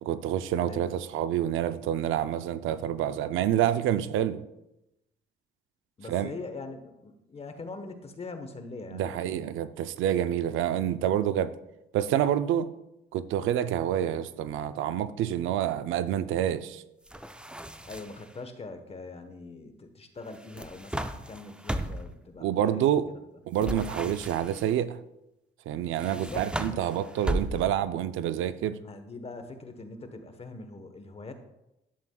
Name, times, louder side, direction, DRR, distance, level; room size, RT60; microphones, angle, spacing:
voice 1, 0.0-4.4 6.1-6.3 8.9-11.5 11.9-12.7 13.1-16.8 22.4-23.0 23.5-25.0 25.7-28.8, right 10 dB, 85° right, 0.5 m, -28 dB
voice 2, 6.0-9.4 17.8-23.0 26.1-26.8 28.8-31.3, left 3 dB, 30° left, 1.1 m, -42 dB
sound 1, 17.1-18.3 20.3-22.2 23.6-24.7 25.9-27.9, right 1 dB, 5° right, 0.5 m, -35 dB
11.0 x 7.4 x 2.3 m
cardioid pair, 90°, 20 cm